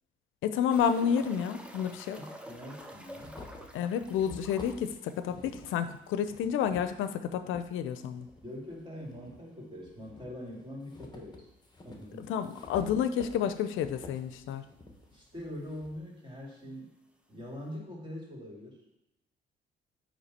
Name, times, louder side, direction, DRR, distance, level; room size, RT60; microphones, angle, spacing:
voice 1, 0.4-2.2 3.7-4.9 5.2-8.3 12.2-14.6, left 8 dB, 85° left, 11 dB, 0.5 m, -30 dB
sound 1, 0.7-6.1 6.4-6.5 6.8-6.9 9.7-9.8 11.5-11.6 12.3-12.4 12.7-12.8 13.7-13.8 13.9-14.5 15.5-15.6, equal, 5° right, 0.7 m, -49 dB
sound 2, 0.8-0.9 2.0-2.1 2.5-7.7 8.2-9.4 9.8-16.0, left 3 dB, 20° left, 1.1 m, -50 dB
voice 2, 2.2-3.4 8.4-11.5 11.8-12.3 15.1-16.9 17.3-18.8, left 1 dB, 25° right, -3 dB, 2.5 m, -43 dB
9.3 x 3.1 x 4.2 m, 0.87 s
cardioid pair, 90°, 20 cm